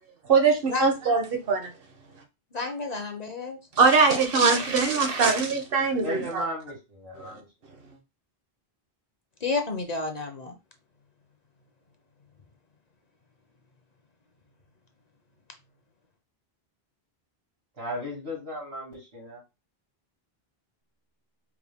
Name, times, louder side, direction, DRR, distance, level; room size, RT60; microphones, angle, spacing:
voice 1, 0.3-1.7 3.8-6.4 7.2-7.3, right 4 dB, 65° right, 1.1 m, -22 dB
voice 2, 2.5-3.6 9.4-10.5, left 3 dB, 45° left, 0.7 m, -30 dB
voice 3, 5.9-7.5 17.7-19.4, equal, 85° right, 2.4 m, -36 dB
4.7 x 2.2 x 3.5 m
omnidirectional pair, 1.0 m